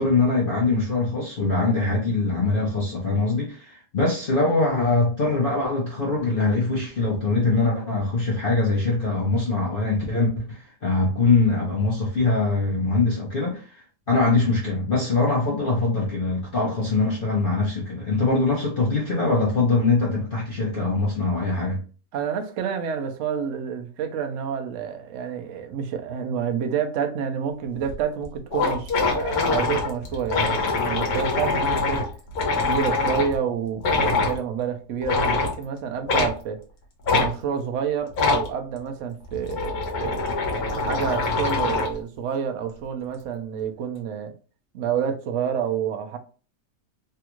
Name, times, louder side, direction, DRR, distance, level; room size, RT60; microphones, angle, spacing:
voice 1, 0.0-21.8, left 3 dB, 50° left, 0.7 m, -23 dB
voice 2, 22.1-32.1 32.6-36.6 37.1-40.2 40.8-44.3 44.7-46.2, right 7 dB, 65° right, 0.8 m, -28 dB
sound 1, 27.8-27.9 28.2-28.3 28.5-33.3 33.8-34.4 35.0-35.5 36.1-36.3 37.0-37.3 38.1-38.5 39.2-42.0, left 3 dB, 70° left, 1.4 m, -24 dB
3.4 x 2.3 x 2.9 m
omnidirectional pair, 1.7 m